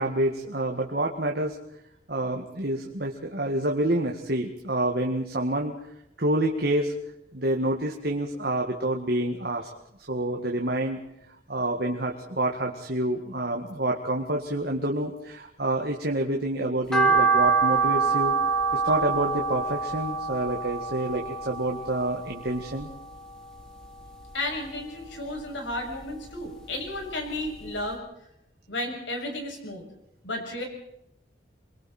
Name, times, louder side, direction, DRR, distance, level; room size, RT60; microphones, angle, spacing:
voice 1, 0.0-1.6 2.1-5.7 6.2-6.9 7.3-9.7 10.1-11.0 11.5-18.3 18.7-22.9, right 1 dB, 55° right, 1 dB, 1.9 m, -28 dB
sound 1, 16.9-23.2 23.6-24.7 25.1-26.5 26.9-27.0 27.4-27.5 27.8-27.9, right 5 dB, 5° left, 2.8 m, -26 dB
voice 2, 24.3-28.0 28.7-29.8 30.2-30.6, left 1 dB, 85° left, 2 dB, 7.0 m, -33 dB
29.0 x 22.0 x 4.4 m, 0.79 s
head